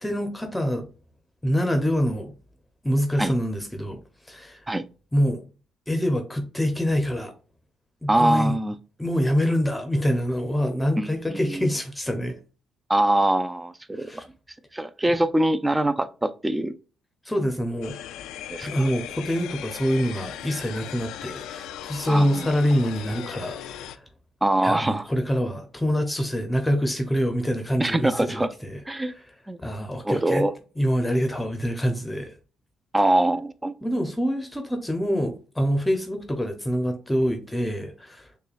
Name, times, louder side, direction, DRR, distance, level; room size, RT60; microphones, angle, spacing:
voice 1, 0.0-0.9 1.4-2.3 2.8-4.0 4.3-4.6 5.1-5.4 5.9-7.3 8.0-8.6 9.0-12.4 13.9-14.2 17.2-18.0 18.6-24.0 24.6-28.8 29.1-29.2 29.6-30.4 30.8-32.3 33.8-38.3, equal, 10° left, 0.8 m, -25 dB
voice 2, 8.1-8.7 11.0-11.7 12.9-14.2 14.7-16.7 18.5-18.7 22.1-22.5 24.4-25.0 27.8-28.5 28.9-29.1 29.5-29.6 30.0-30.5 32.9-33.7, right 1 dB, 15° right, 0.4 m, -23 dB
sound 1, 17.8-24.0, left 11 dB, 90° left, 0.3 m, -38 dB
6.4 x 2.3 x 2.4 m
cardioid pair, 90°, 0 cm